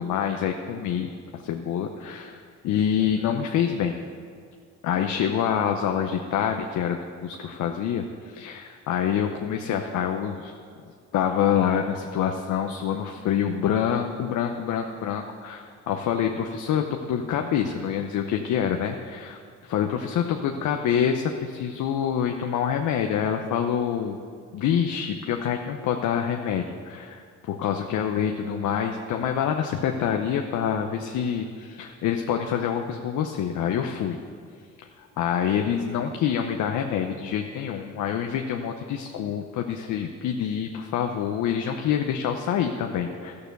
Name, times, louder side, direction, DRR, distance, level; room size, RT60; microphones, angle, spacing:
voice 1, 0.0-4.0 4.8-10.5 11.1-24.2 24.5-34.2 35.0-43.4, left 8 dB, 80° left, 4 dB, 0.8 m, -26 dB
13.5 x 6.8 x 6.7 m, 2.2 s
cardioid pair, 90°, 30 cm